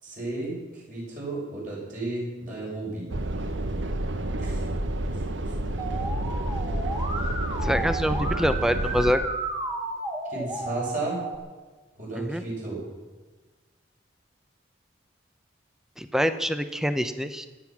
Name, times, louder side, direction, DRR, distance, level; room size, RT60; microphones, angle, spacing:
voice 1, 0.0-3.1 4.4-4.7 5.1-5.5 10.3-11.2 12.0-12.8, right 2 dB, 40° right, -5 dB, 7.1 m, -34 dB
sound 1, 3.1-9.1, right 1 dB, 70° right, 1.2 m, -29 dB
Musical instrument, 5.8-11.3, right 2 dB, 20° right, 2.0 m, -33 dB
voice 2, 7.6-9.3 12.2-12.4 16.0-17.5, equal, ahead, 10 dB, 0.7 m, -25 dB
26.0 x 9.0 x 6.1 m, 1.3 s
head